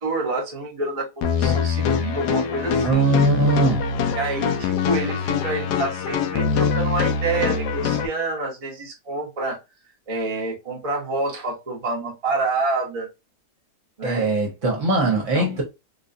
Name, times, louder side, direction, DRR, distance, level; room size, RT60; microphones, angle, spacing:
voice 1, 0.0-3.1 4.2-9.6 10.1-13.1 14.0-14.3 15.3-15.6, right 3 dB, 30° right, 0.8 m, -28 dB
sound 1, 1.2-8.1, left 6 dB, 80° left, 1.2 m, -23 dB
voice 2, 2.8-3.9 14.0-15.6, right 2 dB, 55° right, 1.2 m, -21 dB
3.9 x 2.3 x 2.5 m
omnidirectional pair, 1.8 m